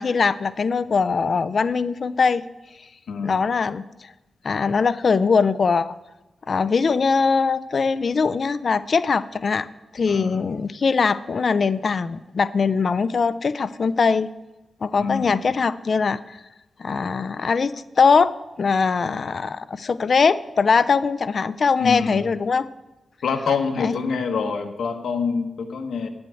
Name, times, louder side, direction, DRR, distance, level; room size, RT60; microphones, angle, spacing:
voice 1, 0.0-2.4 3.2-4.1 4.4-6.0 6.5-9.7 9.9-14.3 14.8-16.4 16.8-22.7 23.8-23.9, left 5 dB, 45° left, 15 dB, 0.4 m, -21 dB
voice 2, 3.1-3.5 10.1-10.5 15.0-15.4 21.8-22.2 23.2-26.1, left 5 dB, 85° left, 5 dB, 1.3 m, -26 dB
8.6 x 7.6 x 9.0 m, 1.1 s
wide cardioid pair, 140°, 0 cm